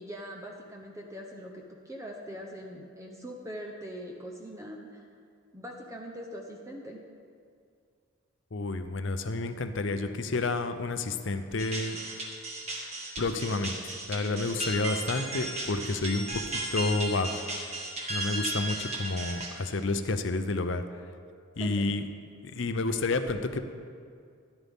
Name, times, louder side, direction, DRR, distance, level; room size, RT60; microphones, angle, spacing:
voice 1, 0.0-5.0 5.5-7.0 21.6-21.9, equal, 15° right, 0 dB, 0.7 m, -42 dB
voice 2, 8.5-12.0 13.2-17.5 18.1-20.8 21.6-22.0 22.4-23.6, left 3 dB, 55° left, 9 dB, 0.6 m, -30 dB
sound 1, 11.6-19.9, right 2 dB, 30° right, 1.3 m, -35 dB
13.0 x 10.5 x 3.6 m, 2.3 s
head